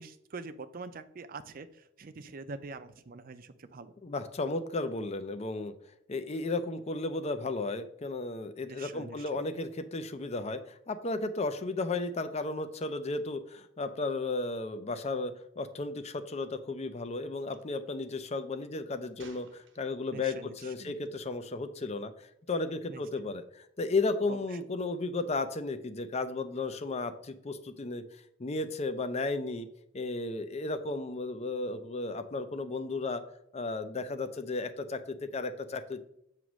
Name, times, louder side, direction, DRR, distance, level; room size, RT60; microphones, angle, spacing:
voice 1, 0.0-3.9 8.7-9.2 20.1-21.0 22.9-23.0 24.3-24.4, right 3 dB, 50° right, 11 dB, 0.5 m, -44 dB
voice 2, 4.0-5.7 6.1-28.0 28.4-29.7 29.9-33.2 33.5-36.0, left 3 dB, 35° left, 10 dB, 0.5 m, -34 dB
Gunshot gunfire, 17.4-17.6 19.2-20.2 21.0-21.3, right 4 dB, 85° right, 1.0 m, -56 dB
7.5 x 3.0 x 6.1 m, 0.75 s
head